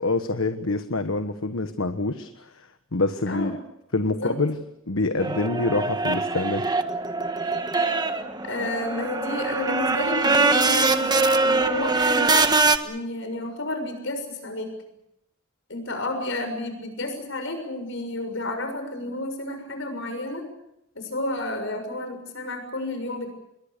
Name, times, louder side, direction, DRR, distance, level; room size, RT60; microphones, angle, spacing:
voice 1, 0.0-2.5 2.9-3.6 3.9-6.7, left 2 dB, 80° left, 8 dB, 1.4 m, -26 dB
sound 1, 5.2-12.8, right 3 dB, 20° right, 1.4 m, -23 dB
voice 2, 8.4-12.5 12.8-14.7 15.7-20.5 20.9-23.3, left 2 dB, 65° left, 7 dB, 6.7 m, -31 dB
28.0 x 22.5 x 6.9 m, 0.83 s
head